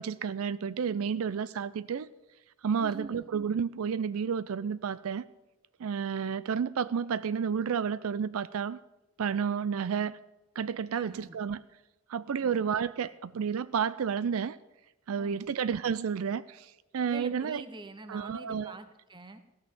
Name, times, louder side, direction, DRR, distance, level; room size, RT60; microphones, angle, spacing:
voice 1, 0.0-2.1 2.6-5.2 5.8-8.8 9.2-10.2 10.6-11.6 12.1-14.6 15.1-17.6 18.1-18.7, right 7 dB, 80° right, 16 dB, 0.4 m, -31 dB
voice 2, 2.8-3.3 10.9-11.4 12.4-12.7 15.2-15.5 17.1-19.4, right 2 dB, 20° right, 9 dB, 0.9 m, -45 dB
15.5 x 6.4 x 8.7 m, 0.99 s
head